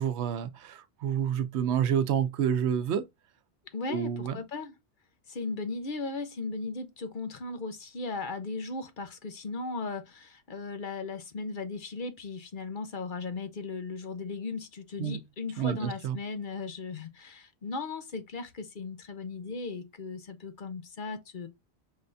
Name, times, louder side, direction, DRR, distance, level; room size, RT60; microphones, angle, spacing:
voice 1, 0.0-3.1 3.9-4.4 15.0-15.2 15.6-16.2, right 8 dB, 85° right, 0.9 m, -29 dB
voice 2, 3.7-4.8 5.3-21.5, left 3 dB, 50° left, 0.9 m, -37 dB
5.4 x 3.3 x 2.6 m
omnidirectional pair, 1.1 m